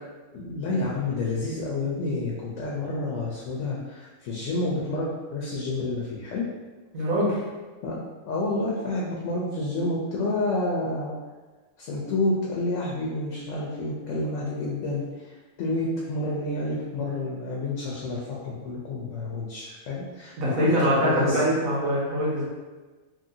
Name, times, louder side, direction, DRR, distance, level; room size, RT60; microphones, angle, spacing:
voice 1, 0.3-6.4 7.8-11.2 11.8-21.4, left 2 dB, 70° left, -4 dB, 0.9 m, -29 dB
voice 2, 6.9-7.4 20.4-22.5, equal, 90° right, -6 dB, 1.3 m, -23 dB
2.9 x 2.6 x 2.6 m, 1.3 s
omnidirectional pair, 1.4 m